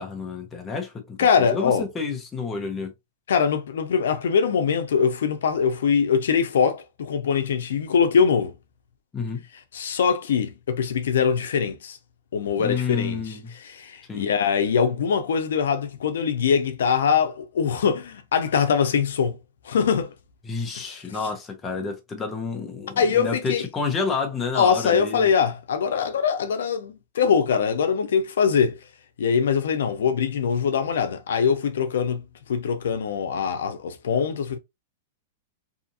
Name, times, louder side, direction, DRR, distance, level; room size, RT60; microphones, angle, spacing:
voice 1, 0.0-2.9 9.1-9.4 12.6-13.5 14.1-14.3 20.4-25.3, left 4 dB, 15° left, 0.8 m, -29 dB
voice 2, 1.2-1.9 3.3-8.5 9.7-12.0 12.3-19.4 19.6-20.1 20.8-20.9 23.0-23.7 24.5-28.8 29.2-32.2 32.5-34.6, left 6 dB, 85° left, 0.5 m, -23 dB
2.7 x 2.5 x 2.7 m
supercardioid pair, 150°, 0 cm